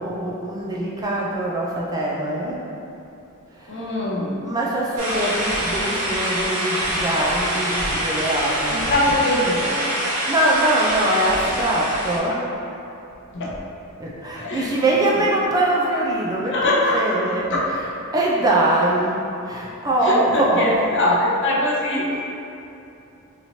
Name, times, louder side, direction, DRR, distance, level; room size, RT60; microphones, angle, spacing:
voice 1, 0.0-2.6 3.5-4.0 4.4-9.2 10.2-12.5 14.0-21.0 22.1-22.3, right 1 dB, 15° right, -4 dB, 0.4 m, -23 dB
voice 2, 3.7-4.4 8.7-9.8 11.7-11.8 12.3-12.4 13.3-13.5 14.3-14.7 16.5-17.6 20.0-22.3, left 1 dB, 55° left, -4 dB, 0.6 m, -22 dB
sound 1, 5.0-12.2, right 1 dB, 80° right, 1.0 m, -25 dB
4.2 x 2.9 x 2.7 m, 2.8 s
head